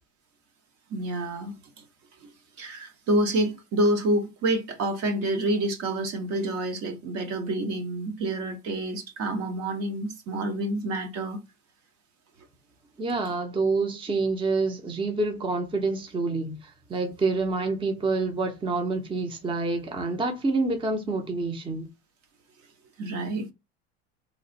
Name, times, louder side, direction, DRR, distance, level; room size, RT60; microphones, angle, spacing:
voice 1, 0.9-1.5 2.2-2.3 2.6-11.4 23.0-23.5, right 1 dB, 50° right, 1.0 m, -28 dB
voice 2, 13.0-21.9, right 3 dB, 15° right, 0.7 m, -27 dB
3.1 x 2.5 x 3.8 m
supercardioid pair, 100°, 32 cm